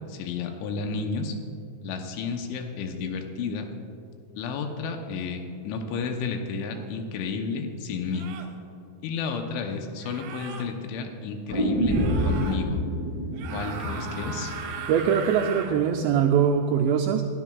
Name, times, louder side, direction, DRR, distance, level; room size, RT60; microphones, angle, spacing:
voice 1, 0.1-1.3 1.8-3.7 4.4-8.3 9.0-12.0 12.3-12.8 13.5-14.5, left 5 dB, 80° left, 4 dB, 3.2 m, -31 dB
sound 1, 6.7-6.9 8.1-8.6 10.0-10.7 11.9-12.6 13.3-15.8, right 6 dB, 75° right, 3.2 m, -38 dB
sound 2, 11.5-15.5 15.8-15.9, right 1 dB, 10° right, 1.5 m, -28 dB
voice 2, 14.9-17.2, right 7 dB, 90° right, 1 dB, 2.5 m, -22 dB
21.5 x 13.0 x 2.4 m, 2.6 s
omnidirectional pair, 5.5 m